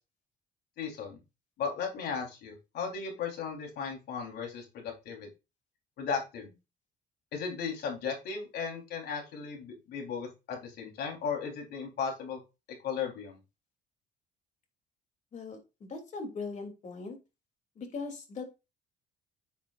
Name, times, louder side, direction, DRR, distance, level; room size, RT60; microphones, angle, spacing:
voice 1, 0.8-1.2 1.6-5.3 6.0-6.5 7.3-12.4 12.8-13.4, left 6 dB, 75° left, 1 dB, 4.0 m, -36 dB
voice 2, 15.3-17.2 17.7-18.4, left 4 dB, 45° left, 4 dB, 3.2 m, -40 dB
10.5 x 7.3 x 2.6 m, 0.27 s
cardioid pair, 110°, 17 cm